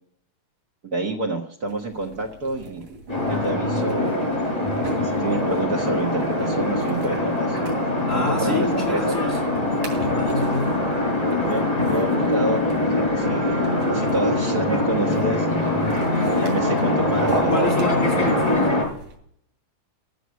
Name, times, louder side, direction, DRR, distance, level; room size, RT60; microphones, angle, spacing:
voice 1, 0.8-2.8 3.3-4.4 4.7-7.8 8.1-9.2 10.0-10.5 11.4-15.7 16.3-17.7, right 2 dB, 60° right, 1 dB, 1.0 m, -29 dB
sound 1, 1.7-19.2, right 2 dB, 85° right, 4.5 m, -38 dB
sound 2, 3.1-18.8, left 1 dB, 10° left, 4.9 m, -23 dB
voice 2, 8.0-9.4 9.9-10.7 14.6-14.8 17.5-18.7, left 3 dB, 60° left, 0 dB, 0.8 m, -28 dB
14.0 x 6.2 x 8.3 m, 0.64 s
omnidirectional pair, 3.8 m